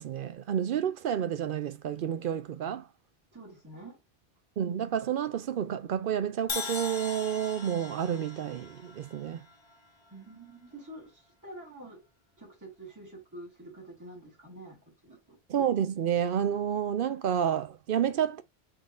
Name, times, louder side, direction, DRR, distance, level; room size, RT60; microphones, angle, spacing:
voice 1, 0.0-2.9 4.6-9.5 15.5-18.4, right 9 dB, 65° right, 0.7 m, -30 dB
voice 2, 3.3-4.0 10.1-12.1 12.4-15.4, right 1 dB, 15° right, 2.1 m, -47 dB
Crash cymbal, 6.5-10.5, left 5 dB, 35° left, 0.6 m, -40 dB
3.8 x 3.7 x 2.5 m
omnidirectional pair, 1.1 m